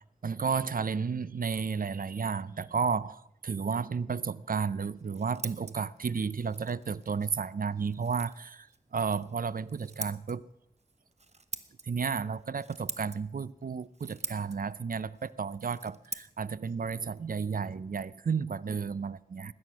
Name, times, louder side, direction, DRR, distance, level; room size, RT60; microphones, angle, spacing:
voice 1, 0.0-10.5 11.8-19.5, right 5 dB, 70° right, 0.5 m, -32 dB
Scissors, 4.8-18.4, right 3 dB, 45° right, 0.9 m, -46 dB
19.5 x 9.4 x 6.1 m
wide cardioid pair, 65°, 15 cm